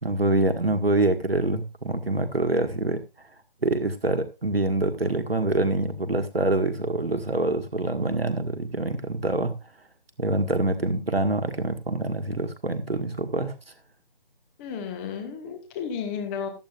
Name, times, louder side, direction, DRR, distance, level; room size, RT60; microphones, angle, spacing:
voice 1, 0.0-3.0 3.6-9.6 10.2-13.6, right 2 dB, 85° right, 1.8 m, -25 dB
voice 2, 14.6-16.5, left 7 dB, 15° left, 1.3 m, -33 dB
15.0 x 12.0 x 2.5 m
figure-of-eight pair, 150°, 29 cm